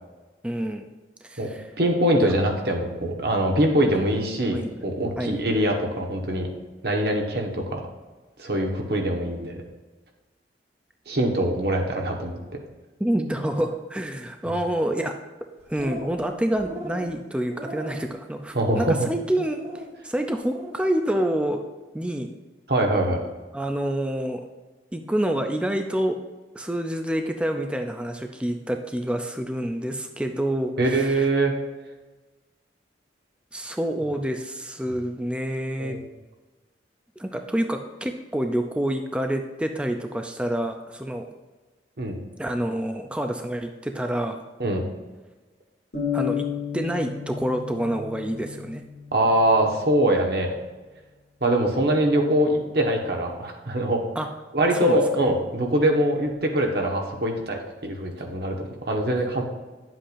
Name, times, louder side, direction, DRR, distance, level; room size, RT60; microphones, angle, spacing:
voice 1, 0.4-0.9 1.2-1.7 2.2-2.3 4.5-4.7 5.2-5.4 13.0-15.1 15.7-21.6 21.9-22.3 23.5-24.4 24.9-26.2 26.5-31.3 33.5-36.0 37.2-41.3 42.4-44.4 46.1-46.5 46.7-48.8 54.2-54.3 54.8-55.0, right 1 dB, 5° right, 5 dB, 0.4 m, -27 dB
voice 2, 1.8-6.5 6.8-7.8 8.4-9.6 11.1-12.6 14.4-14.5 18.5-19.0 22.7-23.2 30.8-31.5 35.8-36.0 42.0-42.2 44.6-44.8 49.1-50.5 51.4-54.0 54.5-59.4, right 1 dB, 60° right, 1 dB, 1.3 m, -23 dB
sound 1, 15.6-16.3 16.5-17.1 17.5-18.1 18.5-19.0 19.4-19.9 20.3-20.8, equal, 40° right, 1.4 m, -37 dB
sound 2, 45.9-49.7, left 8 dB, 65° left, 1.8 m, -32 dB
10.0 x 7.6 x 2.6 m, 1.2 s
head